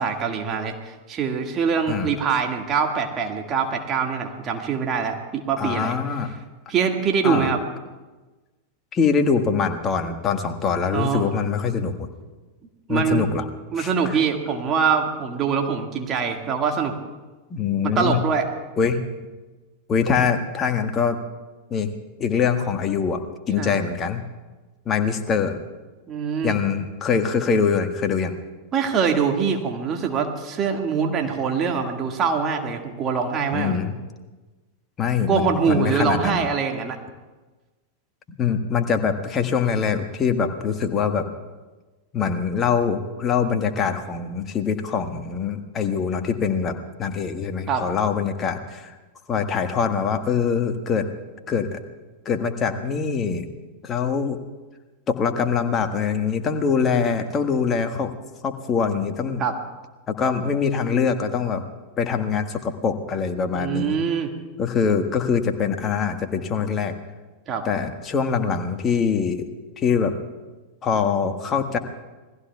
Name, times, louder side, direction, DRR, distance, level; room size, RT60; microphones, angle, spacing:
voice 1, 0.0-5.9 6.7-7.6 10.9-11.3 12.9-13.2 13.7-16.9 17.8-18.5 23.6-23.8 26.1-26.6 28.7-33.8 35.3-37.0 47.7-47.9 59.4-59.5 63.5-64.3 67.5-67.6, right 6 dB, 30° right, 2 dB, 1.9 m, -24 dB
voice 2, 5.6-6.3 7.2-7.5 8.9-12.1 12.9-13.4 13.8-14.2 17.5-18.2 18.8-19.0 19.9-21.2 21.7-21.9 22.2-23.2 23.5-24.2 24.8-25.6 26.4-28.3 33.5-34.0 35.0-36.4 38.4-41.2 42.1-48.9 49.3-51.0 51.5-51.8 52.2-53.5 53.8-54.4 55.1-58.1 58.4-59.4 60.1-61.6 62.0-64.0 64.6-66.9 67.6-69.5 69.8-70.1 70.8-71.8, left 6 dB, 25° left, 6 dB, 1.6 m, -23 dB
28.5 x 21.0 x 2.4 m, 1.2 s
figure-of-eight pair, 90°, 0 cm